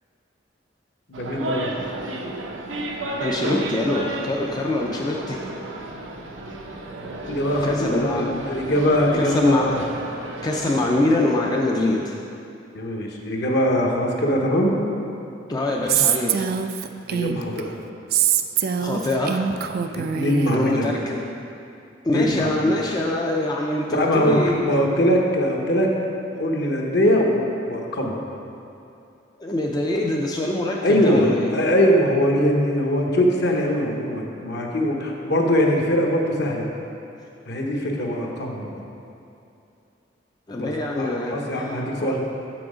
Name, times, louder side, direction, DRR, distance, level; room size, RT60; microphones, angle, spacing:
voice 1, 1.1-1.7 7.3-9.8 12.7-14.8 17.1-17.7 19.9-20.9 22.1-22.7 23.9-25.9 26.4-28.2 30.8-36.7 37.5-38.8 40.6-42.2, equal, 60° left, 0 dB, 1.0 m, -22 dB
sound 1, 1.1-11.0, right 1 dB, 85° right, 0.8 m, -32 dB
voice 2, 3.2-5.4 7.6-8.3 9.1-9.8 10.4-12.2 15.5-16.5 18.8-19.4 20.5-21.2 22.0-24.7 29.4-31.5 40.5-42.2, left 2 dB, 20° left, -1 dB, 0.4 m, -24 dB
Female speech woman speaking, 15.9-17.6 18.1-20.6, right 9 dB, 55° right, 0.3 m, -23 dB
6.9 x 6.1 x 4.9 m, 2.7 s
head